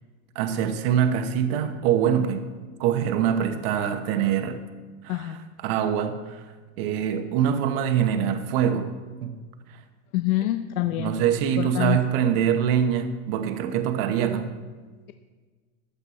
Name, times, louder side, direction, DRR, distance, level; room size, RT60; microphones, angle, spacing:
voice 1, 0.3-2.5 2.8-4.6 5.0-6.4 6.8-8.9 9.2-9.3 11.0-14.5, right 9 dB, 45° right, 7 dB, 1.1 m, -24 dB
voice 2, 10.1-11.1 11.6-12.0, left 15 dB, 80° left, 9 dB, 0.7 m, -26 dB
15.0 x 11.0 x 4.2 m, 1.4 s
supercardioid pair, 175°, 41 cm